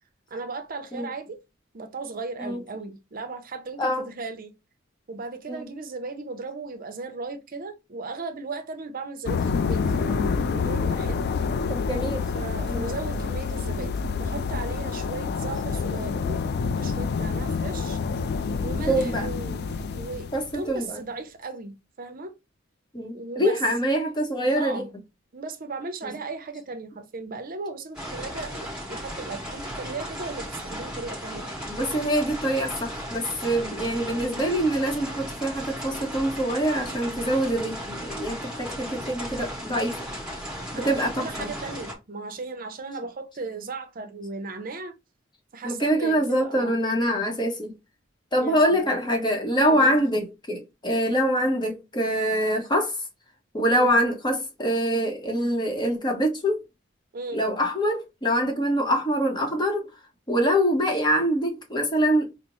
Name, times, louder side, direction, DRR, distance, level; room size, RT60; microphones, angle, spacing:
voice 1, 0.3-1.4 1.7-4.5 5.1-11.3 12.3-18.0 18.6-22.3 23.1-23.6 24.6-24.9 25.3-31.5 40.7-45.0 45.5-46.8 48.4-49.1 49.7-50.0 53.6-53.9 57.1-57.4, right 3 dB, 45° right, 0.6 m, -36 dB
sound 1, 9.3-20.6, left 5 dB, 55° left, 0.4 m, -28 dB
voice 2, 11.7-12.2 12.7-12.9 18.9-19.3 20.3-21.0 22.9-24.8 26.0-26.1 31.6-40.0 40.7-41.5 45.6-47.7 48.3-53.0 53.5-56.6 57.3-59.8 60.3-62.3, equal, 25° left, 0.9 m, -24 dB
sound 2, 27.9-41.9, equal, 5° right, 1.2 m, -36 dB
5.0 x 2.0 x 3.0 m
head